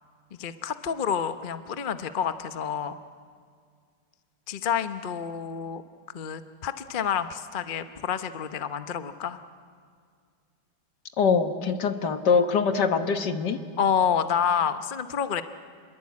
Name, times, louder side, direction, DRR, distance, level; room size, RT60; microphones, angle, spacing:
voice 1, 0.3-3.0 4.5-5.8 6.1-9.4 13.8-15.4, left 7 dB, 40° left, 10 dB, 0.7 m, -28 dB
voice 2, 11.2-13.6, left 5 dB, 70° left, 8 dB, 1.8 m, -23 dB
28.0 x 21.5 x 8.5 m, 2.1 s
omnidirectional pair, 1.9 m